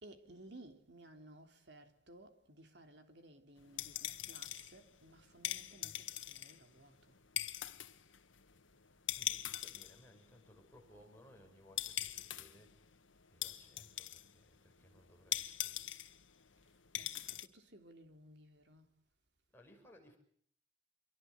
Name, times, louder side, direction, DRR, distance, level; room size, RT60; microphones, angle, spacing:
voice 1, 0.0-7.1 16.9-18.9, right 1 dB, 60° right, 3.3 m, -58 dB
sound 1, 3.6-17.5, left 12 dB, 90° left, 1.6 m, -43 dB
voice 2, 9.1-12.7 13.3-15.8 19.5-20.2, equal, 10° left, 6.5 m, -62 dB
27.0 x 24.0 x 8.3 m
head